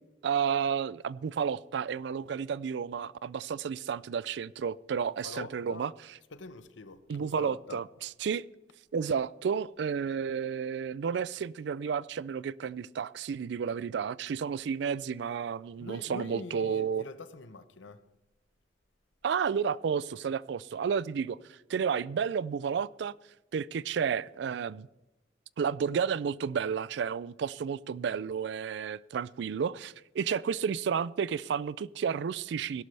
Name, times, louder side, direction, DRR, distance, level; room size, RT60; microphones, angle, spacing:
voice 1, 0.2-5.9 7.1-8.5 8.9-17.1 19.2-23.1 23.5-24.9 25.6-32.8, right 7 dB, 65° right, 0.3 m, -31 dB
voice 2, 5.2-5.8 6.3-7.8 15.8-18.0, left 3 dB, 85° left, 0.9 m, -44 dB
17.0 x 11.5 x 3.3 m
head